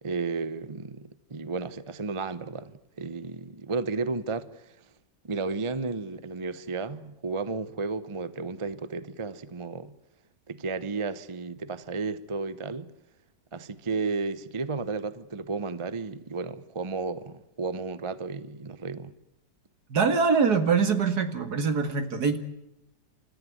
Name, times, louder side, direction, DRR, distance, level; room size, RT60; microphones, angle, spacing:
voice 1, 0.0-4.7 5.2-9.9 10.5-12.9 13.5-19.1, right 4 dB, 25° right, 0.7 m, -33 dB
voice 2, 19.9-22.4, right 5 dB, 65° right, 2.4 m, -23 dB
29.5 x 14.0 x 9.4 m
omnidirectional pair, 1.9 m